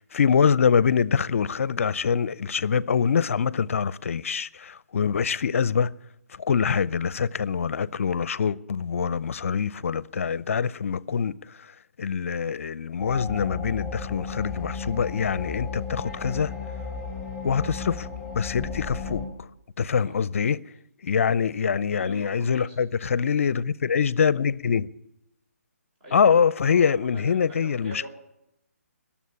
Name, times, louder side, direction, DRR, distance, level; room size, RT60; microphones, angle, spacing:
voice 1, 0.0-5.9 6.4-11.4 12.0-16.5 17.4-18.1 18.4-19.2 19.8-20.6 21.0-24.9 26.1-28.0, left 6 dB, 60° left, 0.6 m, -24 dB
sound 1, 13.0-19.3, left 5 dB, 5° right, 4.7 m, -34 dB
voice 2, 21.0-21.6 21.9-22.8 26.0-28.1, right 1 dB, 30° right, 5.6 m, -45 dB
20.0 x 7.3 x 8.5 m
figure-of-eight pair, 150°, 8 cm